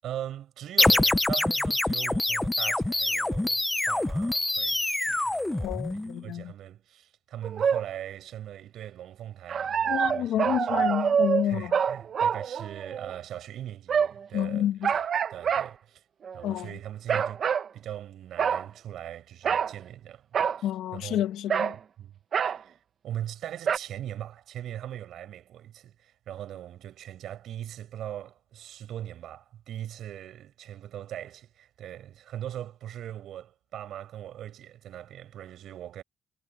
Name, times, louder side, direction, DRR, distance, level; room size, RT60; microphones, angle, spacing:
voice 1, 0.0-5.8 6.2-10.9 11.4-16.0 16.3-17.4 17.7-21.3 22.0-22.1 22.5-22.8 23.0-36.0, right 11 dB, 75° right, 8.0 m, -40 dB
sound 1, 0.8-6.2, left 1 dB, 10° left, 0.8 m, -25 dB
voice 2, 5.6-6.5 9.9-11.7 14.3-14.9 16.4-16.8 20.6-21.8, left 11 dB, 85° left, 2.0 m, -29 dB
sound 2, 7.4-7.8 9.5-13.1 13.9-14.3 14.8-15.7 16.2-16.5 17.1-17.7 18.4-18.7 19.4-19.7 20.3-20.6 21.5-21.8 22.3-22.6 23.7-23.8, right 7 dB, 55° right, 1.1 m, -26 dB
cardioid pair, 90°, 0 cm